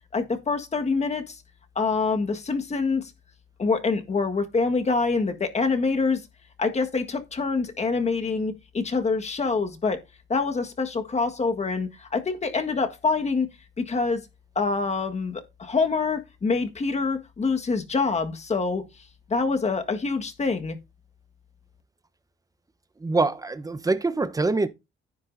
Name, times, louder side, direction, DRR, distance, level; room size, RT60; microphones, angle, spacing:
voice 1, 0.1-1.4 1.7-3.0 3.6-6.2 6.6-10.0 10.3-13.5 13.8-14.2 14.5-18.8 19.3-20.8, left 4 dB, 35° left, 1.6 m, -25 dB
voice 2, 23.0-24.7, right 3 dB, 15° right, 1.0 m, -24 dB
10.5 x 9.4 x 2.7 m
cardioid pair, 90°, 20 cm